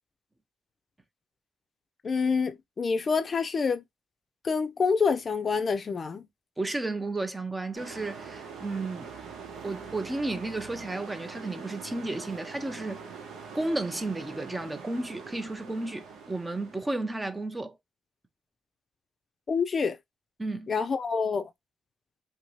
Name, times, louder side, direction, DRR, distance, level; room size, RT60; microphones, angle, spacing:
voice 1, 2.0-3.8 4.4-6.3 19.5-20.0 20.7-21.5, left 5 dB, 40° left, 0.5 m, -27 dB
voice 2, 6.6-9.1 9.6-13.1 13.5-17.8 20.4-20.7, right 2 dB, 15° right, 0.5 m, -33 dB
sound 1, 7.7-16.9, right 5 dB, 80° right, 1.0 m, -43 dB
2.8 x 2.8 x 3.1 m
cardioid pair, 90°, 0 cm